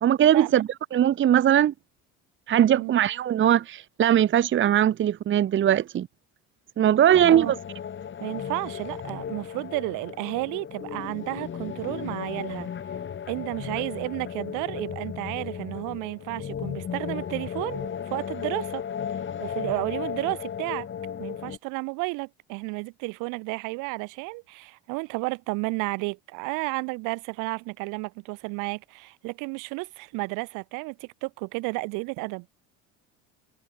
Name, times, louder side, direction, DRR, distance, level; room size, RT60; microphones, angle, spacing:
voice 1, 0.0-1.7 2.5-6.1 6.8-7.6, right 10 dB, 40° right, 1.1 m, -20 dB
sound 1, 7.1-21.6, left 8 dB, 35° left, 6.5 m, -35 dB
voice 2, 8.2-12.7 13.3-18.8 19.4-20.9 21.2-32.5, right 28 dB, 75° right, 2.9 m, -32 dB
supercardioid pair, 105°, 31 cm